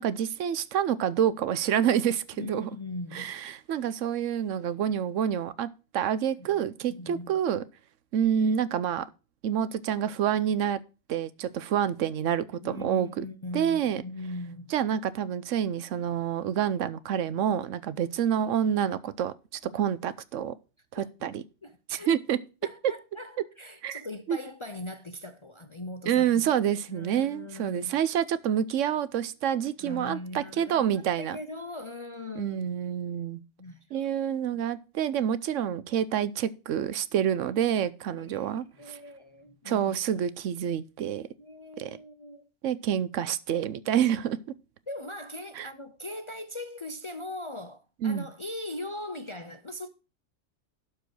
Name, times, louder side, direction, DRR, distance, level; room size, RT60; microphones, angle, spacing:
voice 1, 0.0-2.7 3.1-7.6 8.1-9.1 9.4-10.8 11.1-13.3 13.5-14.0 14.7-19.3 19.7-20.5 20.9-21.4 21.9-22.4 23.8-24.0 24.3-24.4 26.1-31.4 32.4-33.4 33.9-39.0 39.7-41.3 41.8-42.0 42.6-44.4 45.6-45.7 48.0-48.3, right 9 dB, 85° right, 1.0 m, -28 dB
voice 2, 2.3-3.4 6.4-6.6 6.9-7.4 12.6-14.7 19.6-19.7 21.0-21.3 21.6-22.1 22.6-26.5 26.9-28.0 29.8-32.7 33.6-34.1 38.2-38.5 38.8-40.2 41.4-42.5 44.9-49.9, left 2 dB, 40° left, 0.4 m, -40 dB
12.0 x 4.7 x 6.2 m
omnidirectional pair, 1.3 m